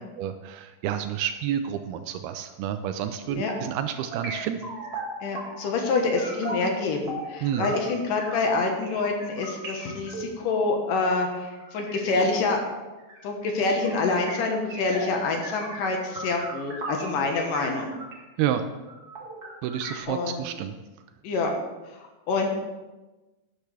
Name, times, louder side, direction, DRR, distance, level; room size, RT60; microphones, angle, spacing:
voice 1, 0.2-4.6 7.4-7.7 18.4-18.6 19.6-20.8, right 10 dB, 85° right, 8 dB, 2.5 m, -29 dB
sound 1, 3.3-3.7 4.1-5.8 6.2-18.2 18.5-18.6 18.8-20.0, right 2 dB, 35° right, 1.6 m, -38 dB
voice 2, 5.2-12.6 13.2-17.9 20.1-20.4 21.2-21.5 21.9-22.5, left 3 dB, 65° left, 2 dB, 2.6 m, -26 dB
12.5 x 9.8 x 3.4 m, 1.1 s
omnidirectional pair, 4.5 m